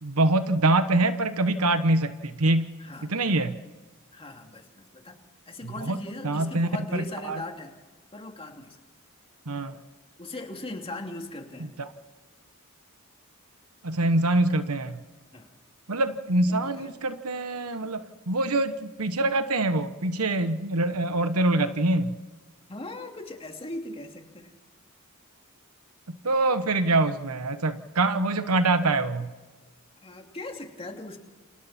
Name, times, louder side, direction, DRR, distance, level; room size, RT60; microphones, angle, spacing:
voice 1, 0.0-2.7 3.0-3.6 5.6-7.4 9.5-9.8 11.8-11.9 13.8-15.0 15.9-22.1 26.1-29.3, right 2 dB, 90° right, 10 dB, 1.2 m, -25 dB
voice 2, 2.8-3.1 4.1-5.2 5.5-7.7 8.1-8.8 10.2-11.7 15.3-15.5 16.5-16.9 22.7-24.5 30.0-31.2, left 2 dB, 25° left, 3 dB, 2.7 m, -39 dB
29.0 x 24.5 x 4.4 m, 1.3 s
head